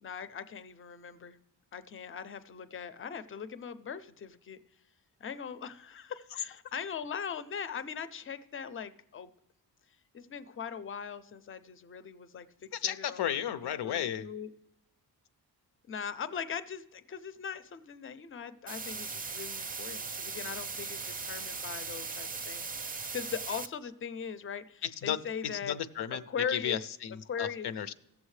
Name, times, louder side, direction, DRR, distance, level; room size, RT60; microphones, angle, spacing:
voice 1, 0.0-1.4 1.7-4.6 5.2-9.3 10.1-14.5 15.9-25.8 26.1-26.8 27.3-27.7, left 7 dB, 35° left, 13 dB, 0.5 m, -40 dB
voice 2, 12.7-14.3 24.8-26.2 26.5-27.9, left 9 dB, 85° left, 13 dB, 0.6 m, -34 dB
sound 1, 18.7-23.7, right 4 dB, 25° right, 0.4 m, -38 dB
17.0 x 7.2 x 3.2 m, 0.86 s
wide cardioid pair, 145°, 38 cm